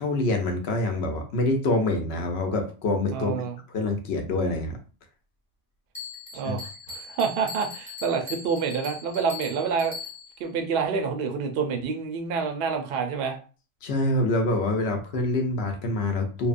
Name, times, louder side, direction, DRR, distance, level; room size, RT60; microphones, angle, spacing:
voice 1, 0.0-3.4 3.7-4.8 6.4-6.6 13.8-16.5, left 2 dB, 65° left, 4 dB, 0.8 m, -26 dB
voice 2, 3.1-3.6 6.3-9.9 10.4-13.4, right 5 dB, 60° right, 4 dB, 0.7 m, -28 dB
Bell, 5.9-10.5, left 4 dB, 15° left, 0.7 m, -40 dB
3.1 x 2.1 x 2.4 m, 0.36 s
omnidirectional pair, 1.3 m